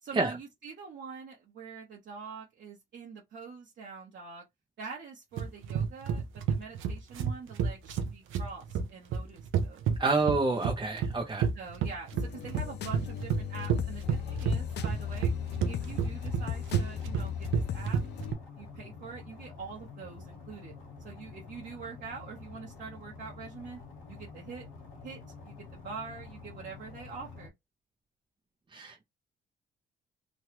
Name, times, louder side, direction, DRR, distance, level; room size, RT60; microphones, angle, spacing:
voice 1, 0.0-4.4 4.8-10.0 11.5-15.3 15.7-18.0 18.6-20.7 21.0-23.8 24.1-24.7 25.0-27.5, right 5 dB, 60° right, 1.0 m, -45 dB
sound 1, 5.4-18.3, right 7 dB, 85° right, 0.6 m, -30 dB
voice 2, 10.0-11.5 28.7-29.0, right 3 dB, 25° right, 0.6 m, -28 dB
sound 2, 12.1-18.4, left 10 dB, 60° left, 0.4 m, -37 dB
sound 3, 14.0-27.5, left 4 dB, 85° left, 1.1 m, -48 dB
3.1 x 2.3 x 2.9 m
cardioid pair, 90°, 20 cm